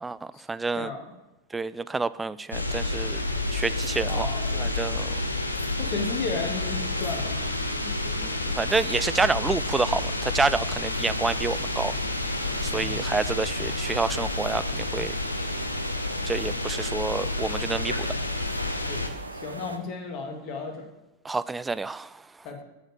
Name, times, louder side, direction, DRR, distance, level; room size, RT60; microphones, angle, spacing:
voice 1, 0.5-0.9 1.5-3.2 3.5-4.3 4.5-5.1 8.2-11.9 12.6-15.1 16.3-18.1 21.2-22.1, right 3 dB, 10° right, 16 dB, 0.3 m, -28 dB
sound 1, 2.5-19.1, left 2 dB, 85° left, 0.9 m, -29 dB
voice 2, 4.1-4.6 5.8-7.5 7.9-8.0 12.6-13.1 18.7-19.1 19.3-20.9 22.4-22.6, left 4 dB, 40° left, 3 dB, 2.2 m, -34 dB
sound 2, 11.1-19.8, right 2 dB, 80° right, 0.7 m, -40 dB
7.7 x 7.2 x 6.5 m, 0.96 s
figure-of-eight pair, 90°, 0 cm